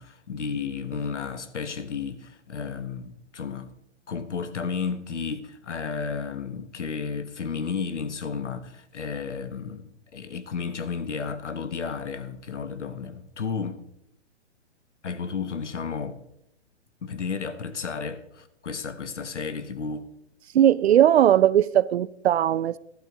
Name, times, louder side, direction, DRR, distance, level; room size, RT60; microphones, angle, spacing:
voice 1, 0.0-3.7 4.1-13.8 15.0-16.2 17.0-20.1, left 5 dB, 80° left, 1.1 m, -33 dB
voice 2, 20.5-22.8, right 11 dB, 65° right, 0.5 m, -19 dB
12.0 x 11.5 x 3.1 m
figure-of-eight pair, 120°, 35 cm